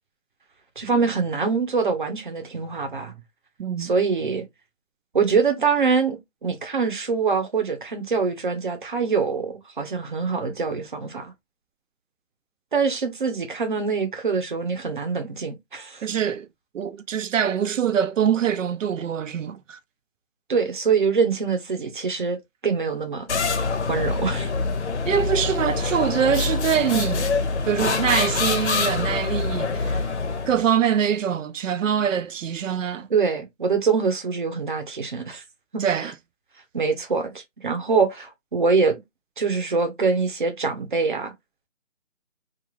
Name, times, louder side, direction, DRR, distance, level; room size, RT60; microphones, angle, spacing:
voice 1, 0.8-3.1 3.8-4.4 5.1-11.3 12.7-16.1 20.5-22.4 22.6-23.3 23.9-24.5 33.1-35.4 35.7-36.1 36.7-39.0 39.4-41.3, right 5 dB, 40° right, 0.7 m, -24 dB
voice 2, 3.6-3.9 16.0-16.5 16.7-19.8 25.0-27.3 27.7-30.1 30.5-33.1 35.8-36.1, right 8 dB, 85° right, 0.5 m, -24 dB
sound 1, 23.3-30.7, left 4 dB, 60° left, 0.7 m, -25 dB
2.5 x 2.5 x 3.1 m
hypercardioid pair, 170°, 38 cm